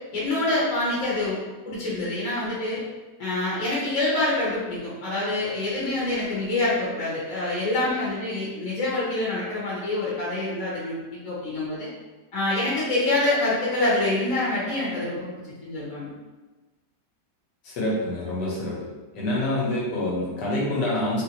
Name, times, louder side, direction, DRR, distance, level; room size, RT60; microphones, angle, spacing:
voice 1, 0.1-2.8 3.2-11.9 12.3-15.3 15.6-16.1, left 2 dB, 55° left, -7 dB, 1.3 m, -26 dB
voice 2, 17.6-18.8 19.1-21.2, left 1 dB, 85° left, -5 dB, 1.6 m, -26 dB
3.7 x 2.5 x 2.9 m, 1.2 s
omnidirectional pair, 1.9 m